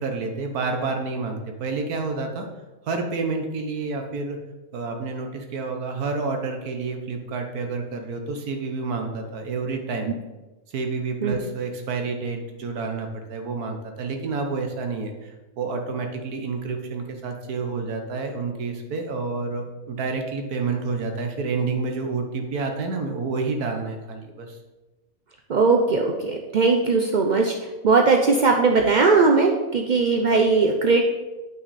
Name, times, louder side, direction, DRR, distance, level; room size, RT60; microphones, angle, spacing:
voice 1, 0.0-2.5 2.9-4.4 4.7-10.1 10.7-24.6, right 4 dB, 85° right, 4 dB, 1.5 m, -29 dB
voice 2, 25.5-31.0, right 4 dB, 65° right, 2 dB, 0.4 m, -19 dB
7.9 x 6.0 x 4.1 m, 1.1 s
omnidirectional pair, 1.5 m